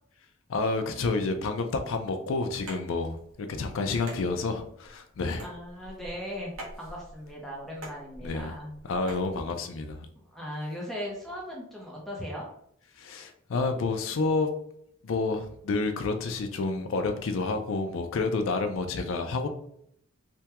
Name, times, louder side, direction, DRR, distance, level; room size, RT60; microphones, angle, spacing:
voice 1, 0.5-5.4 8.2-8.5 8.9-10.1 13.0-14.5 15.0-19.5, left 3 dB, 75° left, 7 dB, 0.4 m, -29 dB
sound 1, 2.7-9.3, right 1 dB, 90° right, 1.0 m, -46 dB
voice 2, 5.4-8.7 10.1-12.5, equal, ahead, -3 dB, 0.6 m, -38 dB
3.4 x 2.2 x 2.8 m, 0.70 s
head